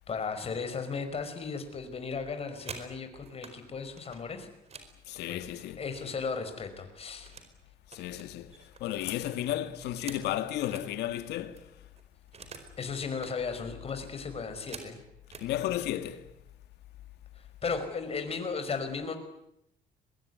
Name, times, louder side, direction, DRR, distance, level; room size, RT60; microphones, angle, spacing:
voice 1, 0.1-4.5 5.3-5.5 5.8-7.3 12.8-15.0 17.4-19.2, left 5 dB, 35° left, 5.4 m, -35 dB
sound 1, 2.4-3.6 4.0-6.3 6.6-7.5 7.9-10.9 11.3-11.4 11.6-12.8 13.0-13.4 13.9-15.5 16.3-16.5 16.9-17.2 17.5-18.0, right 5 dB, 40° right, 4.7 m, -49 dB
voice 2, 5.1-5.8 7.9-8.5 8.8-11.7 15.4-16.3, left 12 dB, 80° left, 2.1 m, -33 dB
24.0 x 21.5 x 9.6 m
cardioid pair, 110°, 17 cm